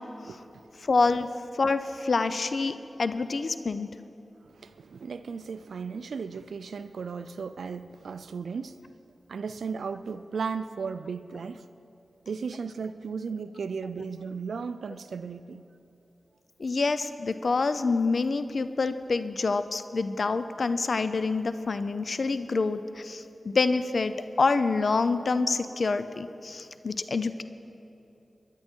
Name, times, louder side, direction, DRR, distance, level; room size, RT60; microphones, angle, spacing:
voice 1, 0.8-1.3 1.6-3.9 16.6-27.4, left 4 dB, 65° left, 12 dB, 0.5 m, -27 dB
voice 2, 4.5-8.8 9.3-11.6 12.3-15.6, right 5 dB, 90° right, 12 dB, 0.4 m, -35 dB
21.5 x 11.5 x 4.5 m, 2.9 s
cardioid pair, 45°, 0 cm